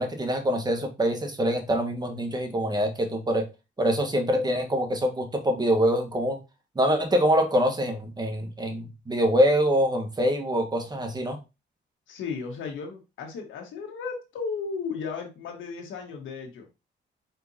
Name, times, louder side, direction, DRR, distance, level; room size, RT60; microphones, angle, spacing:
voice 1, 0.0-3.5 3.8-6.4 6.7-11.4, equal, 20° right, 4 dB, 1.3 m, -24 dB
voice 2, 12.1-16.7, left 5 dB, 75° left, 1 dB, 1.5 m, -35 dB
4.5 x 4.3 x 2.8 m, 0.26 s
cardioid pair, 90°, 20 cm